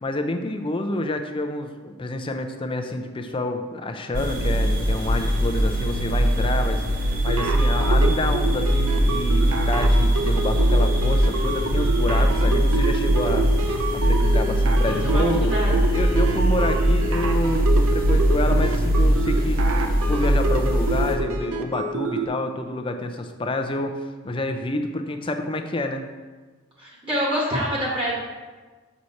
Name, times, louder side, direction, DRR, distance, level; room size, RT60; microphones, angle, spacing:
voice 1, 0.0-13.5 14.0-23.9 24.2-26.1, left 2 dB, 25° left, 5 dB, 0.5 m, -28 dB
sound 1, 4.1-21.1, right 1 dB, 40° right, 0.9 m, -21 dB
sound 2, 7.2-22.3, right 3 dB, 75° right, 0.7 m, -28 dB
voice 2, 14.9-15.8 26.8-28.1, equal, 25° right, -5 dB, 1.7 m, -26 dB
6.4 x 6.0 x 4.1 m, 1.3 s
head